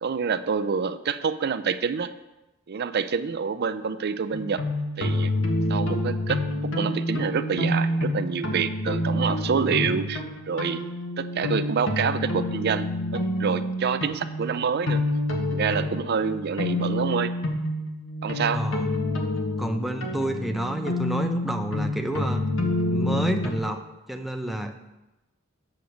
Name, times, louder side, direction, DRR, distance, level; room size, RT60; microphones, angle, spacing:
voice 1, 0.0-2.1 2.7-4.6 5.0-5.3 5.7-10.9 11.2-15.0 15.5-17.3 18.2-18.7, right 6 dB, 55° right, 12 dB, 0.5 m, -27 dB
sound 1, 4.3-23.6, left 1 dB, 70° left, 1.4 m, -28 dB
voice 2, 9.7-10.1 18.5-18.8 19.6-22.4 22.9-23.8 24.1-24.7, right 1 dB, ahead, 4 dB, 0.6 m, -29 dB
7.8 x 4.9 x 7.1 m, 1.0 s
head